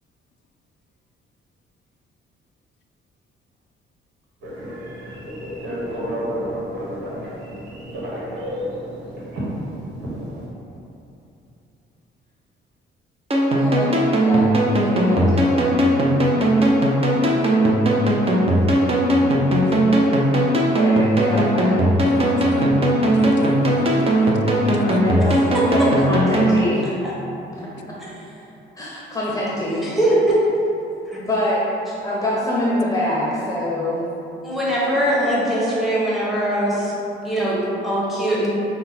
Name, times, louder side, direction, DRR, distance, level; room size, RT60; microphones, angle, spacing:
Telephone, 4.4-10.5, equal, 75° right, 1.3 m, -30 dB
sound 1, 13.3-26.5, right 1 dB, 30° right, 0.7 m, -18 dB
voice 1, 13.5-14.5 14.8-15.8 20.8-21.8 25.0-25.4 25.7-26.8 27.6-27.7 28.8-29.9 31.2-31.6 32.0-34.1, left 1 dB, 15° left, -6 dB, 0.8 m, -25 dB
voice 2, 22.0-22.8 23.1-25.1, left 4 dB, 65° left, 4 dB, 0.4 m, -32 dB
voice 3, 29.8-30.4 31.1-31.2 34.4-36.9 37.2-38.5, right 1 dB, ahead, -8 dB, 1.1 m, -21 dB
5.3 x 2.3 x 4.1 m, 2.9 s
cardioid pair, 90°, 20 cm